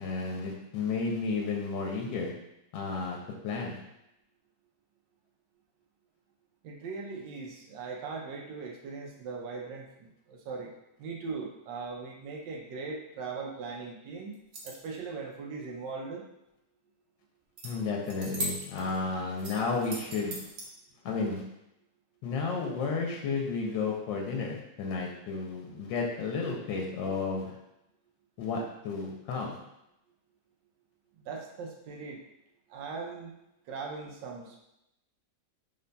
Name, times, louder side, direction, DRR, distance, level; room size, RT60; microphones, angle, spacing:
voice 1, 0.0-2.3 2.7-3.2 3.4-3.8 17.6-20.4 21.0-21.4 22.2-27.5 28.4-29.6, left 4 dB, 85° left, 0 dB, 1.3 m, -32 dB
voice 2, 6.6-9.9 10.3-10.7 11.0-14.3 14.6-16.2 31.2-32.2 32.7-33.3 33.7-34.6, right 4 dB, 75° right, 0 dB, 1.3 m, -39 dB
sound 1, 14.3-15.0 17.6-17.7 18.0-19.0 19.4-20.7, right 1 dB, 60° right, 1.0 m, -38 dB
3.9 x 3.5 x 2.2 m, 0.86 s
omnidirectional pair, 2.0 m